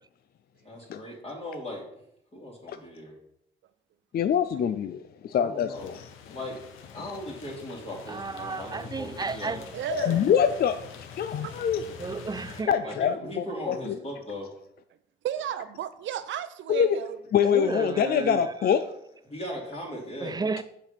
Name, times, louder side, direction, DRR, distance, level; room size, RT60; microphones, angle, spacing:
voice 1, 0.6-1.8 2.3-3.1 5.3-5.9 6.3-6.6 6.9-9.7 12.8-14.5 19.3-20.4, left 1 dB, 30° left, 2.7 m, -38 dB
voice 2, 4.1-6.1 7.0-7.1 9.9-10.8 11.2-11.8 12.7-14.0 16.7-17.0 17.3-18.8, left 8 dB, 50° left, 0.5 m, -25 dB
sound 1, 5.7-12.6, left 6 dB, 90° left, 1.0 m, -45 dB
voice 3, 8.1-9.7 12.0-13.2 13.5-13.6 17.4-18.9 20.2-20.6, right 4 dB, 20° right, 0.5 m, -33 dB
voice 4, 9.7-10.3 11.4-11.6 15.2-17.2, right 10 dB, 70° right, 0.7 m, -33 dB
7.1 x 5.3 x 5.8 m
cardioid pair, 90°, 20 cm